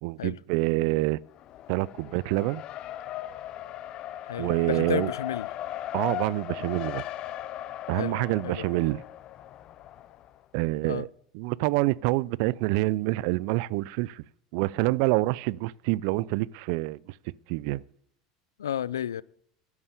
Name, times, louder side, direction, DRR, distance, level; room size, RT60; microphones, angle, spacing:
voice 1, 0.0-1.2 1.7-2.6 4.4-5.1 5.9-7.0 7.9-9.0 10.5-11.1 11.3-14.2 14.5-17.0 17.5-17.8, right 20 dB, 65° right, 0.4 m, -27 dB
Race car auto racing, 1.3-10.4, left 13 dB, 50° left, 0.8 m, -38 dB
voice 2, 4.2-5.5 8.0-8.7 10.8-11.0 18.6-19.2, left 9 dB, 90° left, 0.4 m, -32 dB
12.5 x 9.7 x 6.7 m
hypercardioid pair, 85°, 2 cm